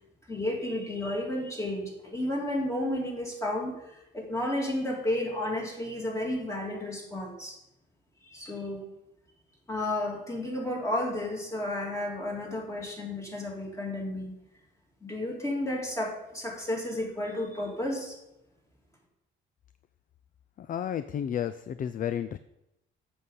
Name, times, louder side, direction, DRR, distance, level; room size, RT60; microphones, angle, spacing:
voice 1, 0.3-7.6 8.3-8.8 9.7-14.3 15.0-18.2, left 1 dB, 15° left, -1 dB, 2.9 m, -32 dB
voice 2, 20.6-22.4, left 9 dB, 45° left, 13 dB, 0.4 m, -32 dB
7.8 x 6.5 x 5.5 m, 0.86 s
cardioid pair, 90°, 20 cm